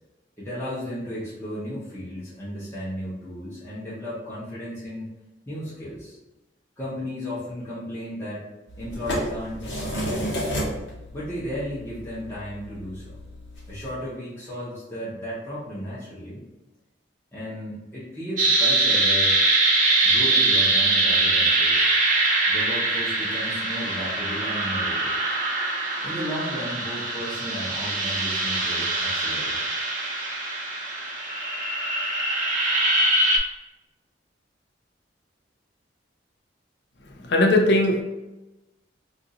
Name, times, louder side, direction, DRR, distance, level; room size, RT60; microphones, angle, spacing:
voice 1, 0.4-5.1 5.5-6.2 6.8-8.4 8.8-10.5 11.1-13.2 13.7-16.4 17.3-19.4 20.0-21.9 22.5-25.1 26.0-29.6, equal, 15° left, -9 dB, 0.7 m, -34 dB
sound 1, 8.7-13.9, equal, 85° left, 1.0 m, -32 dB
sound 2, 18.4-33.4, right 2 dB, 45° right, 0.7 m, -23 dB
voice 2, 37.2-38.0, left 1 dB, 65° left, 1 dB, 0.5 m, -19 dB
2.5 x 2.4 x 3.9 m, 1.0 s
head